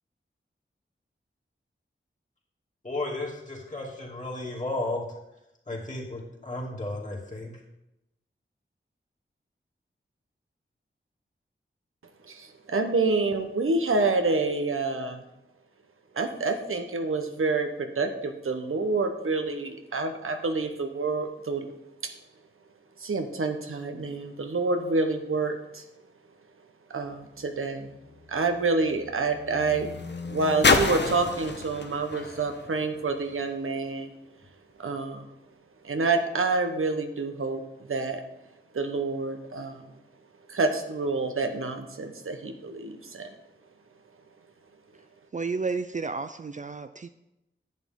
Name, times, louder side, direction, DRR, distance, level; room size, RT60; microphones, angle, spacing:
voice 1, 2.8-5.1 5.7-7.5, left 2 dB, 35° left, -3 dB, 2.7 m, -33 dB
voice 2, 12.2-15.2 16.1-21.7 23.0-25.8 26.9-27.9 28.3-29.9 30.3-34.1 34.8-35.3 35.8-37.6 37.9-38.2 38.7-39.8 40.5-43.3, right 3 dB, 90° right, 6 dB, 1.0 m, -28 dB
sound 1, 27.1-33.6 34.4-34.5, left 4 dB, 55° left, 0.9 m, -30 dB
voice 3, 45.3-47.1, right 4 dB, 35° right, 10 dB, 0.4 m, -31 dB
10.5 x 8.4 x 3.7 m, 0.89 s
wide cardioid pair, 75°, 21 cm